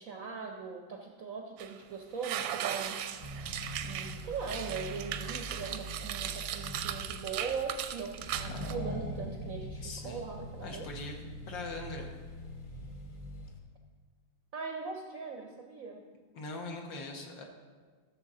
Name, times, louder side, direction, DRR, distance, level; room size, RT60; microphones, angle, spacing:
voice 1, 0.0-3.0 3.8-10.9 14.5-16.1, right 5 dB, 65° right, 2 dB, 0.8 m, -40 dB
sound 1, 1.6-1.7 2.2-8.7, right 10 dB, 85° right, 1.4 m, -38 dB
Accelerating revving vroom, 3.2-13.6, equal, 45° left, 0.6 m, -43 dB
voice 2, 9.8-10.2 10.6-11.2 11.5-12.1 16.3-17.4, left 3 dB, 70° left, 2 dB, 1.8 m, -41 dB
13.5 x 6.9 x 3.7 m, 1.5 s
omnidirectional pair, 2.2 m